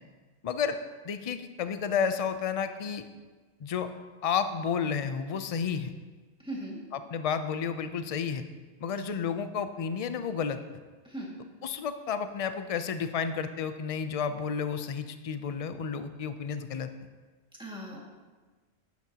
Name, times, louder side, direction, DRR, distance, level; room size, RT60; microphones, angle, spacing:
voice 1, 0.4-0.8 1.0-3.0 3.6-3.9 4.2-5.9 6.9-8.4 8.8-10.6 11.6-16.9, left 6 dB, 45° left, 10 dB, 0.5 m, -31 dB
voice 2, 6.4-6.8 11.0-11.3 17.6-18.0, right 1 dB, 5° right, -4 dB, 2.0 m, -38 dB
10.5 x 10.5 x 2.9 m, 1.3 s
omnidirectional pair, 1.1 m